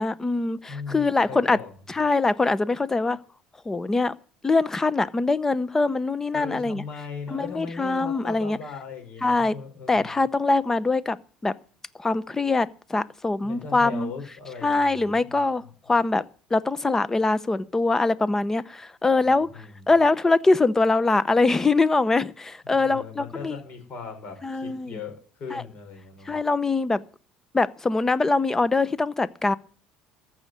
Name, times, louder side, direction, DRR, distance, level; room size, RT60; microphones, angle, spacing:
voice 1, 0.0-1.6 1.9-3.2 3.7-4.1 4.4-6.8 7.3-8.6 9.2-9.5 9.9-11.2 11.4-11.5 12.0-14.1 14.6-16.2 16.5-23.6 24.4-25.0 25.5-25.6 26.3-27.0 27.5-29.5, left 3 dB, 15° left, 18 dB, 0.7 m, -23 dB
voice 2, 0.7-1.7 6.3-10.0 13.4-15.4 19.3-19.9 22.6-26.3, left 5 dB, 50° left, 3 dB, 5.4 m, -38 dB
14.0 x 6.4 x 9.6 m, 0.42 s
cardioid pair, 125°, 3 cm